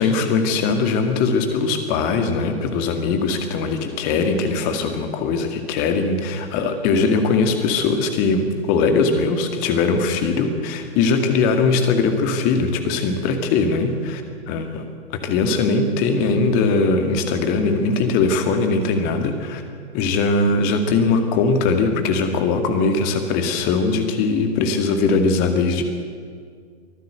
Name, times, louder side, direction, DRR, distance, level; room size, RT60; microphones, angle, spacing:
voice 1, 0.0-14.2 14.5-14.8 15.1-19.6 19.9-25.8, left 4 dB, 25° left, 6 dB, 2.2 m, -20 dB
24.0 x 14.5 x 7.9 m, 2.1 s
figure-of-eight pair, 120°, 33 cm